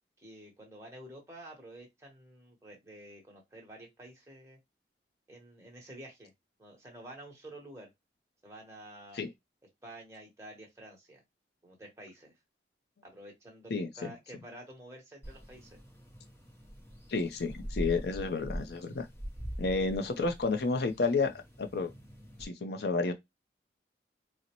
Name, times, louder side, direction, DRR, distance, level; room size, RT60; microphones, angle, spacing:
voice 1, 0.2-4.6 5.3-6.3 6.6-7.9 8.4-9.2 9.8-11.2 11.6-12.3 13.0-15.8, right 1 dB, 15° right, 1.0 m, -50 dB
sound 1, 15.2-22.4, equal, 15° left, 0.8 m, -43 dB
voice 2, 17.1-19.1 19.6-21.9 22.4-23.1, left 3 dB, 65° left, 0.5 m, -31 dB
4.0 x 2.1 x 2.9 m
head